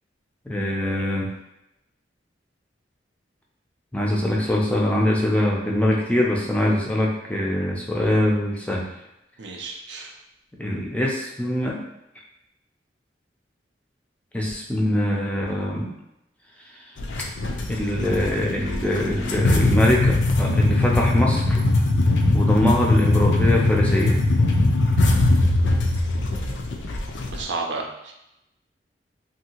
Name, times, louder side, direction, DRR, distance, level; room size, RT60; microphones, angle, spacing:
voice 1, 0.5-1.3 3.9-8.9 10.6-11.8 14.3-15.9 17.7-21.6 22.3-24.2, left 1 dB, 5° left, -3 dB, 0.4 m, -23 dB
voice 2, 9.4-10.2 27.3-28.1, right 3 dB, 85° right, 2 dB, 0.5 m, -32 dB
sound 1, 17.0-27.4, left 2 dB, 90° left, 0.4 m, -21 dB
2.7 x 2.7 x 2.8 m, 0.87 s
head